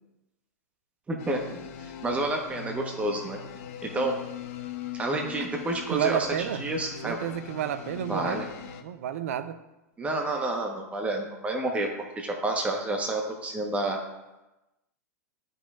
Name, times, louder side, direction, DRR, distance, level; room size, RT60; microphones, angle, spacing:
voice 1, 1.1-3.4 3.8-4.1 4.9-6.3 6.6-7.2 8.1-8.5 10.0-11.9 12.2-14.0, right 2 dB, 15° right, 1 dB, 1.0 m, -29 dB
sound 1, 1.2-8.8, left 8 dB, 55° left, 0.7 m, -41 dB
voice 2, 5.9-6.6 7.0-8.4 8.8-9.6, right 10 dB, 60° right, 12 dB, 0.5 m, -30 dB
12.0 x 5.4 x 2.4 m, 1.0 s
figure-of-eight pair, 100°, 9 cm